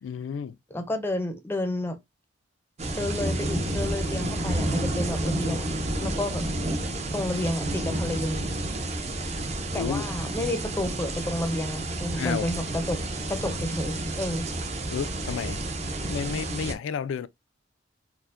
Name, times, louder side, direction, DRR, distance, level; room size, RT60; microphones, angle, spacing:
voice 1, 0.0-0.6 9.7-10.0 12.2-12.5 14.9-15.6 16.1-17.3, left 7 dB, 85° left, 0.3 m, -31 dB
voice 2, 0.7-2.0 3.0-5.7 6.0-6.7 7.1-8.4 9.7-13.0 13.3-14.5, left 1 dB, 10° left, 0.5 m, -31 dB
sound 1, 2.8-16.7, right 1 dB, 35° right, 0.5 m, -30 dB
4.3 x 2.1 x 2.4 m
head